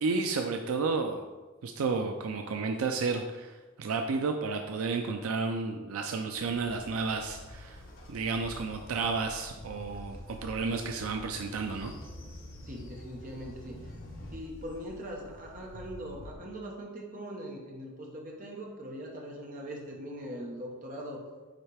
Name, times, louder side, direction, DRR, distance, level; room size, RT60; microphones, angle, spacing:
voice 1, 0.0-1.2 1.6-7.8 8.1-11.9, right 4 dB, 80° right, 4 dB, 0.4 m, -32 dB
Train, 6.3-16.3, left 1 dB, 70° left, 1.3 m, -47 dB
voice 2, 12.7-13.8 14.3-21.2, equal, 40° right, -1 dB, 1.1 m, -41 dB
8.9 x 3.2 x 3.4 m, 1.2 s
head